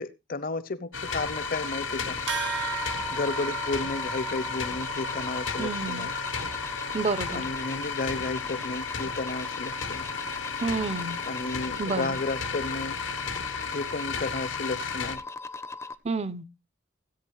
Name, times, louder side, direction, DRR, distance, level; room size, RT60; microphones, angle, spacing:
voice 1, 0.0-2.2 3.1-6.1 7.3-10.1 11.2-13.0 13.7-15.2, left 3 dB, 50° left, 0.7 m, -33 dB
sound 1, 0.9-15.2, left 5 dB, 80° left, 0.9 m, -34 dB
sound 2, 1.1-15.9, left 3 dB, 15° left, 0.6 m, -39 dB
sound 3, 2.3-12.1, right 5 dB, 65° right, 1.2 m, -39 dB
voice 2, 5.6-6.1 6.9-7.5 10.6-11.2 11.8-12.2 16.0-16.5, right 3 dB, 35° right, 0.6 m, -30 dB
17.0 x 8.2 x 3.1 m
head